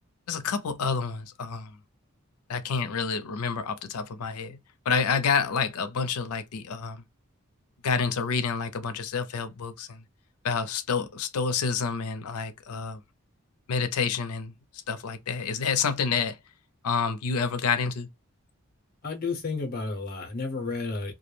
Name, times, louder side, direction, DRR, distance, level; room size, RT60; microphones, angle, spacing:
voice 1, 0.3-1.8 2.5-4.6 4.9-7.0 7.8-10.0 10.4-13.0 13.7-14.5 14.9-16.4 16.8-18.1, left 5 dB, 90° left, 0.5 m, -28 dB
voice 2, 19.0-21.2, left 3 dB, 40° left, 0.7 m, -32 dB
2.2 x 2.0 x 3.0 m
head